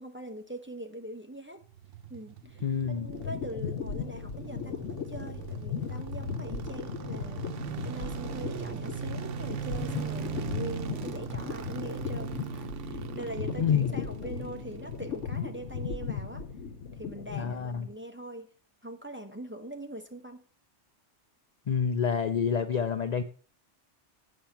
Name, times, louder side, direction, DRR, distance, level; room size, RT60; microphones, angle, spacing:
voice 1, 0.0-1.6 2.1-7.4 7.8-16.4 16.9-18.5 18.8-20.4, right 1 dB, 10° right, 4 dB, 0.9 m, -42 dB
sound 1, 1.6-16.9 17.1-17.2, right 8 dB, 90° right, 1.0 m, -40 dB
sound 2, 2.4-17.9, left 6 dB, 85° left, 1.1 m, -37 dB
voice 2, 2.6-3.1 13.6-13.9 17.3-17.8 21.7-23.2, left 7 dB, 50° left, 10 dB, 0.5 m, -28 dB
8.6 x 6.6 x 5.7 m, 0.42 s
omnidirectional pair, 1.2 m